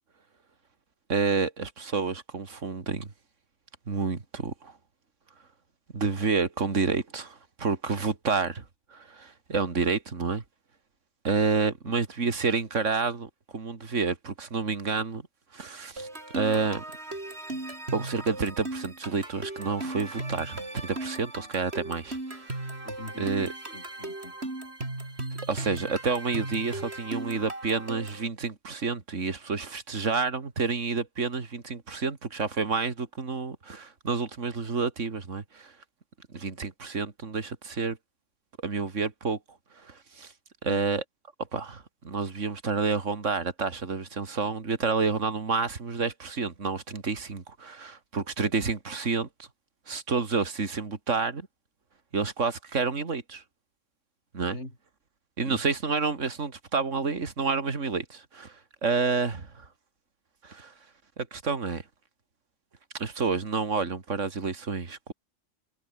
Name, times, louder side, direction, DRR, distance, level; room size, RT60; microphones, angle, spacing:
voice 1, 1.1-3.1 3.9-4.7 5.9-8.6 8.9-10.4 11.2-15.2 15.5-16.1 16.3-16.8 17.9-22.5 23.2-23.5 25.5-35.7 36.3-38.0 38.6-39.4 39.8-40.3 40.6-41.0 41.5-49.3 49.9-51.4 52.1-53.4 54.3-54.6 55.4-59.7 60.4-60.7 61.2-61.8 62.9-65.1, right 4 dB, 70° right, 2.8 m, -29 dB
sound 1, 16.0-28.3, right 2 dB, 55° right, 5.2 m, -37 dB
voice 2, 22.8-24.4 40.6-40.8 54.5-54.8 55.4-55.6, left 2 dB, 60° left, 6.5 m, -43 dB
omnidirectional pair, 1.3 m